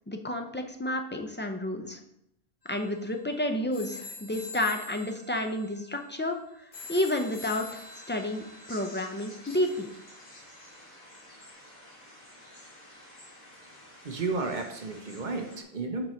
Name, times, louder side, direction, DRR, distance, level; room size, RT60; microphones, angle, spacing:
voice 1, 0.1-2.0 2.7-7.8 8.1-9.9, left 1 dB, 20° left, 4 dB, 0.3 m, -31 dB
sound 1, 2.6-10.7, left 3 dB, 75° left, 1.6 m, -47 dB
sound 2, 6.7-15.6, left 1 dB, 40° left, 2.1 m, -51 dB
voice 2, 14.0-16.1, right 3 dB, 50° right, 4 dB, 0.9 m, -32 dB
5.8 x 5.2 x 4.3 m, 0.77 s
omnidirectional pair, 1.0 m